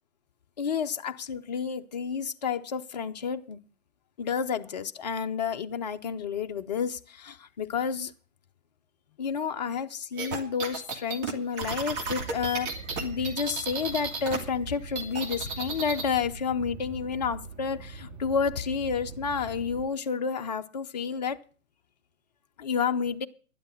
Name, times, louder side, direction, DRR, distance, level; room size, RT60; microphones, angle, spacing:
voice 1, 0.6-3.6 4.2-8.1 9.2-21.4 22.6-23.3, left 6 dB, 30° left, 0.5 m, -30 dB
sound 1, 10.2-14.4 14.7-16.1, right 4 dB, 35° right, 2.6 m, -33 dB
sound 2, 11.9-19.9, right 5 dB, 15° right, 1.3 m, -43 dB
11.5 x 11.0 x 6.3 m
hypercardioid pair, 140°, 44 cm